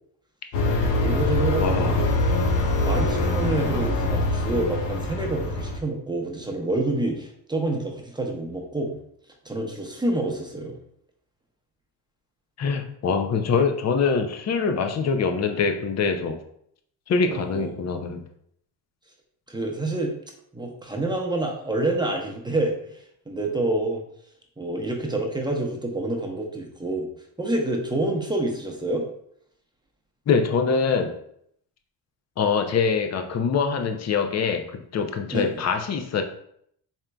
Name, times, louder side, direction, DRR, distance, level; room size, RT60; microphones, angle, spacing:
sound 1, 0.5-5.8, left 1 dB, 90° left, 0.7 m, -24 dB
voice 1, 1.0-2.0 2.8-9.0 9.4-10.8 17.3-17.7 19.5-20.1 20.5-24.0 24.6-27.1 27.4-29.1 35.3-35.6, right 2 dB, 10° right, 0 dB, 0.8 m, -27 dB
voice 2, 1.6-2.0 12.6-16.4 17.1-18.2 30.3-31.1 32.4-36.2, left 5 dB, 40° left, 6 dB, 0.6 m, -24 dB
4.3 x 3.7 x 2.3 m, 0.69 s
cardioid pair, 80°, 42 cm